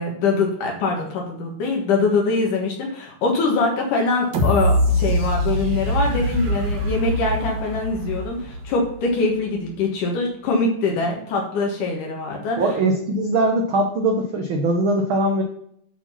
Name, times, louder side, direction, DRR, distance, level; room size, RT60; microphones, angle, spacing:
voice 1, 0.0-12.6, left 3 dB, 75° left, 0 dB, 3.0 m, -23 dB
sound 1, 4.3-9.2 9.7-9.8, equal, 50° right, 1.6 m, -23 dB
voice 2, 12.6-15.4, right 2 dB, 70° right, 2 dB, 1.2 m, -21 dB
8.7 x 4.6 x 5.6 m, 0.68 s
omnidirectional pair, 3.7 m